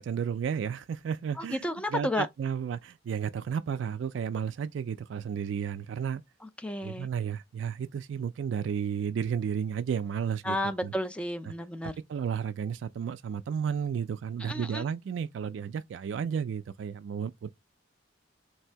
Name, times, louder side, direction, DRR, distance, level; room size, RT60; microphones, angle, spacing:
voice 1, 0.0-6.2 6.8-10.9 11.8-17.5, right 7 dB, 75° right, 0.3 m, -33 dB
voice 2, 1.4-2.3 6.6-7.1 10.4-11.9 14.4-14.9, left 1 dB, 5° left, 0.4 m, -32 dB
3.3 x 2.7 x 4.4 m
head